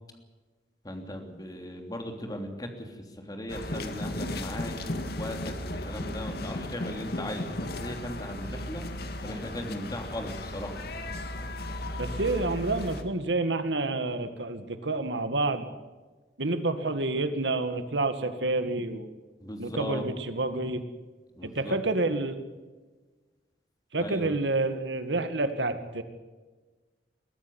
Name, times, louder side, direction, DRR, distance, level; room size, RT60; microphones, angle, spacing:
voice 1, 0.8-2.9 3.3-8.8 9.2-10.8 19.4-20.0 21.3-21.8 24.0-24.3, equal, 20° left, 4 dB, 3.1 m, -37 dB
sound 1, 3.5-13.0, left 1 dB, 60° left, 2.0 m, -35 dB
voice 2, 12.0-15.7 16.4-19.1 19.6-20.8 21.4-22.4 23.9-26.0, right 2 dB, 85° right, 9 dB, 2.0 m, -28 dB
22.5 x 14.5 x 9.5 m, 1.3 s
head